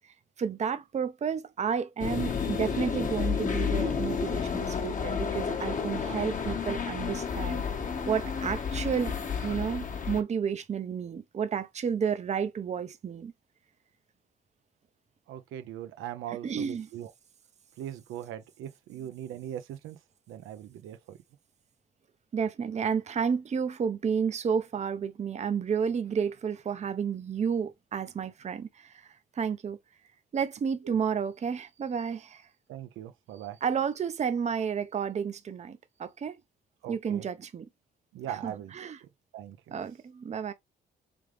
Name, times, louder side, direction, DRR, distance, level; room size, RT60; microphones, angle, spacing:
voice 1, 0.0-7.6 8.1-9.2 9.4-13.3 16.3-16.9 22.3-29.8 30.3-32.5 33.6-36.4 36.9-37.7 38.3-39.0 39.7-40.5, right 7 dB, 35° right, 0.6 m, -31 dB
sound 1, 2.0-10.2, left 6 dB, 40° left, 1.0 m, -31 dB
voice 2, 15.3-17.1 17.8-20.0 20.3-21.2 32.7-33.6 36.8-37.3 38.1-38.9 39.3-39.8, right 11 dB, 85° right, 0.7 m, -40 dB
3.6 x 3.5 x 3.1 m
cardioid pair, 90°, 20 cm